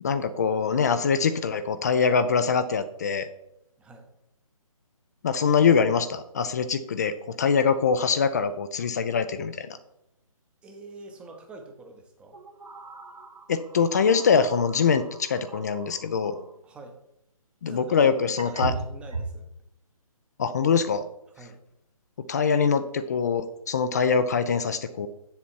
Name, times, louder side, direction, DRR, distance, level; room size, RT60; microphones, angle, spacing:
voice 1, 0.0-3.3 5.2-9.8 13.5-16.4 17.6-18.7 20.4-21.0 22.3-25.1, left 6 dB, 30° left, 11 dB, 0.4 m, -23 dB
voice 2, 3.8-4.1 10.6-12.4 16.6-17.0 17.6-18.1 18.4-19.5 21.4-21.6, right 3 dB, 5° right, 3 dB, 0.8 m, -45 dB
sound 1, 8.8-8.9 9.3-9.4 11.2-11.5 12.3-16.6 17.8-17.9 18.4-19.5, right 3 dB, 80° right, 1.4 m, -38 dB
7.3 x 7.0 x 4.5 m, 0.81 s
figure-of-eight pair, 145°, 18 cm